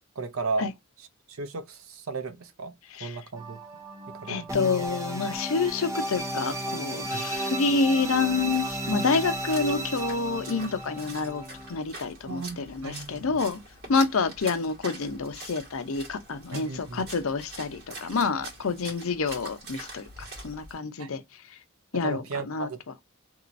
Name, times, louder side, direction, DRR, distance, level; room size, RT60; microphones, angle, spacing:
voice 1, 0.2-0.7 1.3-2.7 3.0-3.6 4.2-4.5 7.1-7.2 12.3-13.2 16.5-17.0 21.0-21.1 22.0-22.8, right 4 dB, 75° right, 0.6 m, -35 dB
sound 1, 3.4-11.8, right 1 dB, 15° right, 0.6 m, -34 dB
voice 2, 4.3-11.4 11.7-13.6 13.9-20.1 20.4-21.2 21.9-22.7, left 4 dB, 70° left, 0.6 m, -28 dB
Splash splatter, 8.1-20.8, right 2 dB, 50° right, 1.7 m, -44 dB
3.0 x 2.8 x 2.5 m
head